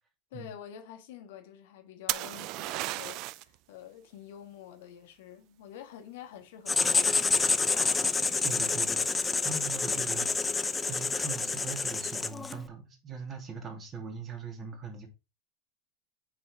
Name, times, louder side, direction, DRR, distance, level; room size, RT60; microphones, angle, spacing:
voice 1, 0.3-7.5, left 10 dB, 70° left, 1.5 m, -47 dB
sound 1, 2.1-3.5 7.2-7.7, right 18 dB, 55° right, 0.3 m, -34 dB
Writing, 6.7-12.6, left 4 dB, 15° left, 0.5 m, -28 dB
voice 2, 8.4-15.1, right 5 dB, 30° right, 2.5 m, -41 dB
6.1 x 4.4 x 4.4 m
hypercardioid pair, 105°, 0 cm